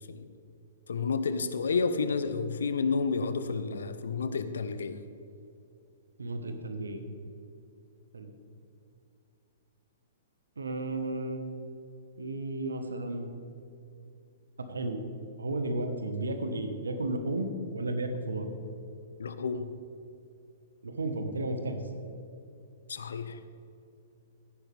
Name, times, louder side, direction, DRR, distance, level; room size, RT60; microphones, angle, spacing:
voice 1, 0.9-5.0 19.2-19.7 22.9-23.4, left 4 dB, 70° left, 11 dB, 0.7 m, -30 dB
voice 2, 6.2-7.0 8.1-8.3 10.6-11.6 12.2-13.3 14.7-15.0 15.4-18.5 20.8-21.8, right 2 dB, 75° right, 7 dB, 1.3 m, -33 dB
14.0 x 10.5 x 3.4 m, 2.7 s
figure-of-eight pair, 115°, 0 cm